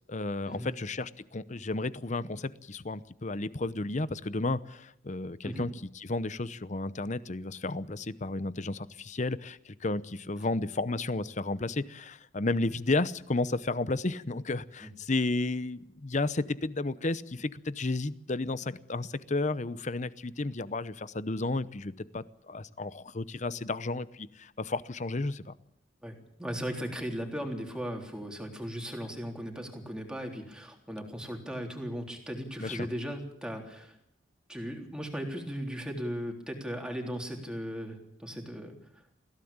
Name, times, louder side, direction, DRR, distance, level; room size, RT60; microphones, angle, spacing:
voice 1, 0.1-25.5 32.6-32.9, left 2 dB, 40° left, 16 dB, 0.8 m, -32 dB
voice 2, 26.0-34.0 34.5-38.7, equal, 5° right, 2 dB, 3.6 m, -37 dB
21.5 x 16.0 x 8.8 m, 0.75 s
head